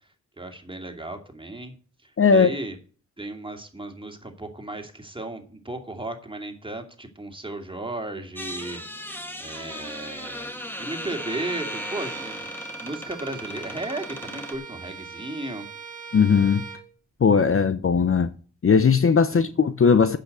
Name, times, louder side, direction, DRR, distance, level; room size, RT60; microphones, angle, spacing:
voice 1, 0.4-1.7 2.0-2.8 3.2-8.8 9.4-10.5 10.8-12.5 12.8-15.7 19.3-19.5, right 2 dB, 15° right, 2.6 m, -35 dB
voice 2, 2.2-2.5 16.1-16.6 17.2-18.3 18.6-20.2, left 6 dB, 45° left, 0.8 m, -18 dB
sound 1, 8.4-14.6, equal, 5° left, 1.9 m, -37 dB
Bowed string instrument, 11.2-16.9, right 4 dB, 85° right, 1.9 m, -40 dB
8.6 x 5.9 x 7.9 m
supercardioid pair, 40°, 31 cm